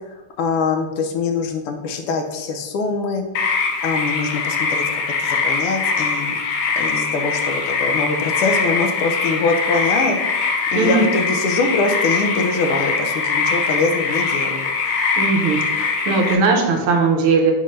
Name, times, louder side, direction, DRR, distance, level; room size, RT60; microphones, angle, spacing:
voice 1, 0.4-3.2 3.8-6.4 6.8-10.4 10.7-14.7, left 3 dB, 80° left, 4 dB, 1.7 m, -23 dB
sound 1, 3.3-16.3, left 4 dB, 65° left, 1.1 m, -22 dB
voice 2, 10.7-11.1 15.1-17.5, right 4 dB, 75° right, 2 dB, 1.7 m, -18 dB
5.6 x 5.5 x 3.2 m, 1.1 s
omnidirectional pair, 2.4 m